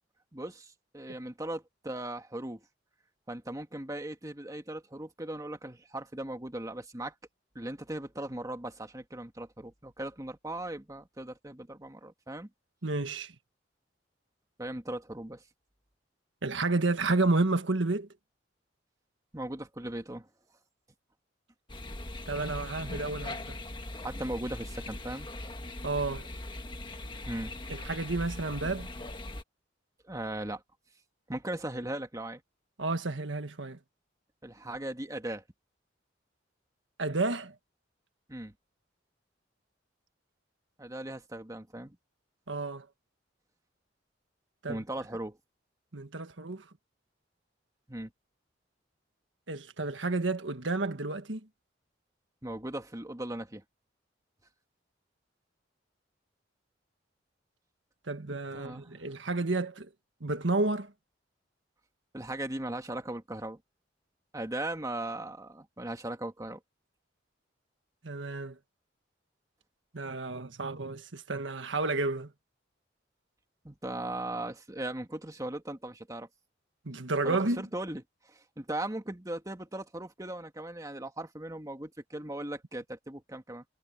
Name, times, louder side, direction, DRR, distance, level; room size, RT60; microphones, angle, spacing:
voice 1, 0.3-2.6 3.3-7.1 7.6-12.5 14.6-15.4 19.3-20.3 24.0-25.3 27.3-27.5 30.1-30.6 31.3-32.4 34.4-35.4 38.3-38.5 40.8-42.0 44.7-45.4 47.9-48.1 52.4-53.6 58.5-58.9 62.1-63.6 64.3-66.6 73.6-76.3 77.2-83.6, right 1 dB, 20° right, 1.8 m, -38 dB
voice 2, 12.8-13.3 16.4-18.1 22.3-23.6 25.8-26.3 27.7-28.9 32.8-33.8 37.0-37.5 42.5-42.9 44.6-44.8 45.9-46.6 49.5-51.4 58.1-59.9 60.2-60.9 68.0-68.6 69.9-72.3 76.8-77.6, right 3 dB, 85° right, 1.5 m, -31 dB
sound 1, 21.7-29.4, left 1 dB, 25° left, 1.7 m, -40 dB
head